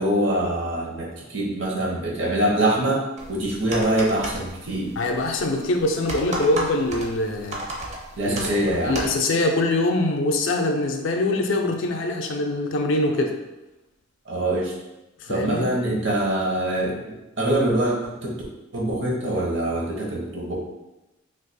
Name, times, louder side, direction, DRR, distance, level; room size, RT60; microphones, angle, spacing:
voice 1, 0.0-5.0 8.2-9.0 14.3-14.7 15.3-18.4 18.7-20.5, right 1 dB, 60° right, -2 dB, 0.8 m, -24 dB
sound 1, 3.2-9.2, right 1 dB, 35° right, 0.5 m, -34 dB
voice 2, 5.0-7.6 8.2-13.3 15.2-15.7, left 2 dB, 65° left, 3 dB, 0.4 m, -23 dB
2.6 x 2.4 x 4.0 m, 0.99 s
head